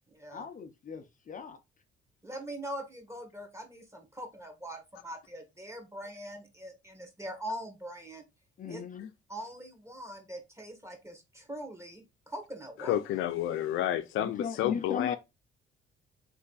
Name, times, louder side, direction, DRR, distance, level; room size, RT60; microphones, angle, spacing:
voice 1, 0.3-1.6 8.6-9.1 14.2-15.2, left 6 dB, 40° left, 0.6 m, -37 dB
voice 2, 2.2-8.2 8.7-8.8 9.3-13.0, right 1 dB, 15° right, 1.5 m, -42 dB
voice 3, 12.8-15.2, left 12 dB, 90° left, 0.5 m, -30 dB
3.5 x 3.3 x 3.9 m
cardioid pair, 90°, 20 cm